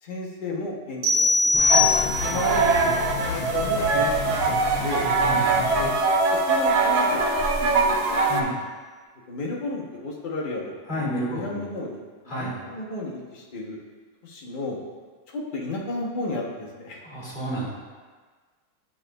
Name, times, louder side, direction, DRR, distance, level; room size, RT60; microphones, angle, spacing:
voice 1, 0.0-4.4 4.6-5.1 5.8-5.9 6.5-7.2 7.6-8.3 9.3-13.8 14.2-14.8 15.3-17.0, left 2 dB, 65° left, -3 dB, 0.5 m, -33 dB
sound 1, 1.0-2.6, left 3 dB, 45° right, 0.9 m, -21 dB
sound 2, 1.5-5.9, left 4 dB, 90° left, 1.4 m, -32 dB
sound 3, 1.7-8.4, right 3 dB, 85° right, 1.4 m, -22 dB
voice 2, 10.9-11.6 12.3-12.6 17.0-17.7, right 1 dB, 25° left, -9 dB, 1.8 m, -30 dB
8.7 x 5.5 x 2.2 m, 1.5 s
omnidirectional pair, 2.1 m